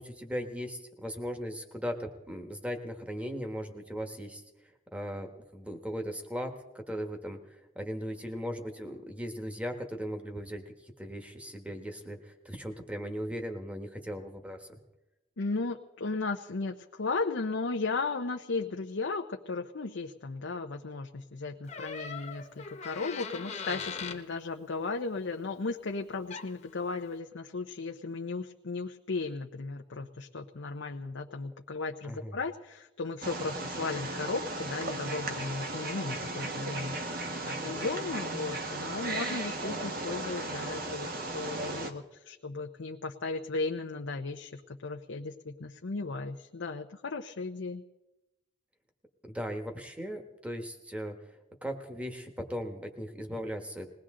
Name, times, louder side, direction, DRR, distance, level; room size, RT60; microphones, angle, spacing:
voice 1, 0.0-4.4 4.9-7.4 7.7-14.7 32.0-32.4 49.3-51.1 51.6-53.9, equal, 5° right, 4 dB, 1.4 m, -38 dB
voice 2, 15.4-41.1 41.3-47.8, left 3 dB, 80° left, 3 dB, 0.7 m, -35 dB
Door, 21.7-24.2 26.0-26.1 26.3-26.7, left 5 dB, 35° left, 1.2 m, -40 dB
Wild animals, 33.2-41.9, right 2 dB, 50° right, 1.4 m, -36 dB
20.5 x 17.5 x 3.8 m, 0.99 s
head